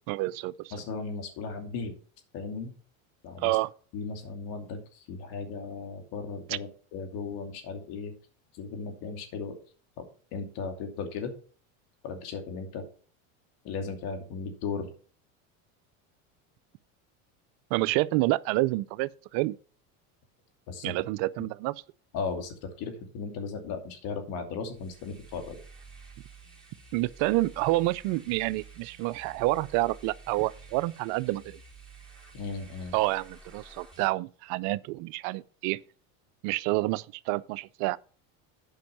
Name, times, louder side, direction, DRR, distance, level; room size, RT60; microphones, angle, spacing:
voice 1, 0.1-0.7 3.4-3.7 6.5-6.6 17.7-19.6 20.8-21.7 26.9-31.6 32.9-35.8 36.4-38.0, right 20 dB, 60° right, 0.5 m, -28 dB
voice 2, 0.7-1.9 2.3-2.7 3.2-3.6 3.9-8.1 8.5-9.6 10.0-10.1 10.3-11.3 12.0-12.8 13.6-14.9 20.7-20.9 22.1-25.6 32.3-32.9, left 5 dB, 60° left, 2.7 m, -36 dB
sound 1, 24.7-34.1, right 4 dB, ahead, 4.2 m, -51 dB
9.1 x 5.3 x 5.7 m
supercardioid pair, 105°, 42 cm